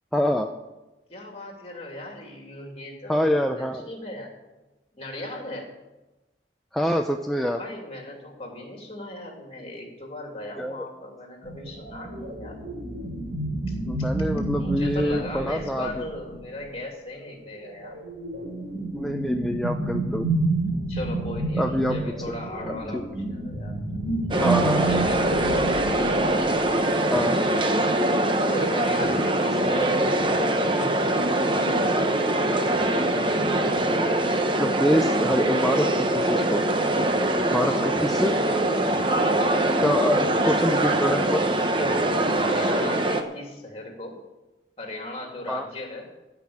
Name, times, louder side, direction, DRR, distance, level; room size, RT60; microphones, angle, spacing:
voice 1, 0.1-0.5 3.1-3.8 6.7-7.6 10.6-10.9 13.9-15.9 18.9-20.3 21.6-22.0 22.9-23.0 24.4-24.9 27.1-27.4 34.5-36.6 37.5-38.4 39.8-41.4 45.5-45.7, equal, ahead, 3 dB, 0.5 m, -25 dB
voice 2, 1.1-4.3 4.9-5.7 7.6-12.6 13.7-13.8 14.6-18.0 20.9-26.0 28.5-32.0 32.4-32.8 37.6-38.0 41.7-44.2 44.8-46.1, left 1 dB, 30° left, 1 dB, 2.7 m, -38 dB
sound 1, 11.4-16.7 17.5-26.9, right 2 dB, 75° right, 3.1 m, -30 dB
sound 2, 24.3-43.2, right 1 dB, 25° right, 0.9 m, -23 dB
15.5 x 5.8 x 8.6 m, 1.1 s
head